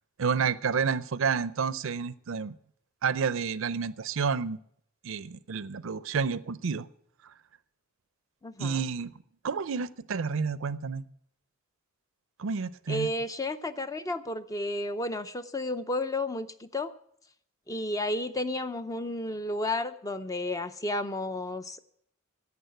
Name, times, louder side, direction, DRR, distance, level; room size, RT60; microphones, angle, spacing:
voice 1, 0.2-2.5 3.0-4.6 5.0-6.9 7.2-7.3 8.6-11.1 12.4-13.1, right 5 dB, 65° right, 0.5 m, -30 dB
voice 2, 8.4-8.8 12.9-16.9 17.7-21.8, left 1 dB, 15° left, 0.5 m, -32 dB
11.0 x 8.4 x 8.0 m
head